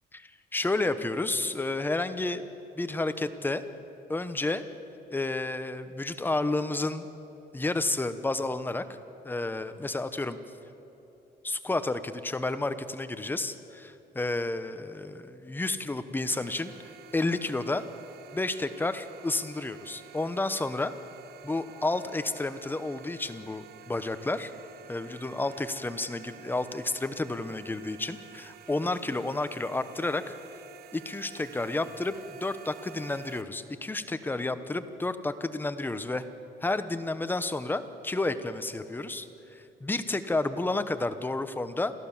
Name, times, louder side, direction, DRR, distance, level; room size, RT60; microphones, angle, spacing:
voice 1, 0.1-2.5 2.8-3.6 4.1-4.7 5.1-7.1 7.5-8.9 9.2-10.4 11.4-16.7 17.1-17.8 18.3-20.9 21.4-24.5 24.9-30.4 30.9-36.3 36.6-41.9, left 2 dB, 10° left, 11 dB, 1.0 m, -31 dB
sound 1, 16.3-33.4, right 11 dB, 70° right, 1.0 m, -51 dB
28.5 x 13.5 x 7.3 m, 2.9 s
cardioid pair, 110°, 17 cm